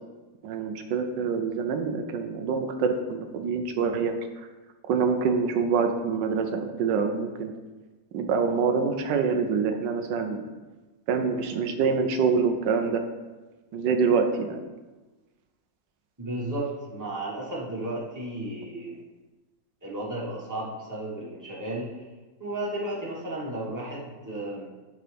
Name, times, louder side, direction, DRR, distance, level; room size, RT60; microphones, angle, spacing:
voice 1, 0.4-4.1 4.8-7.5 8.1-10.4 11.1-13.0 13.7-14.6, right 5 dB, 85° right, 6 dB, 1.3 m, -25 dB
voice 2, 16.2-19.0 19.8-21.9 22.4-24.7, right 1 dB, 10° right, -5 dB, 1.3 m, -33 dB
11.0 x 3.8 x 3.4 m, 1.2 s
omnidirectional pair, 1.9 m